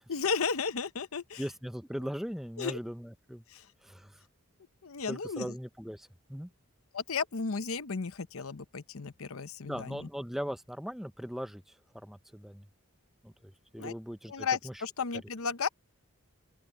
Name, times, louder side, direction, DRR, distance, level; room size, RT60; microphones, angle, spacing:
voice 1, 0.1-1.4 2.6-2.8 3.5-3.7 4.8-5.5 6.9-10.1 13.8-13.9 14.3-15.7, left 5 dB, 70° left, 0.8 m, -34 dB
voice 2, 1.4-3.4 3.8-4.2 5.1-6.5 9.6-11.7 12.0-12.7 13.2-14.7, equal, ahead, 0.6 m, -39 dB
open air
head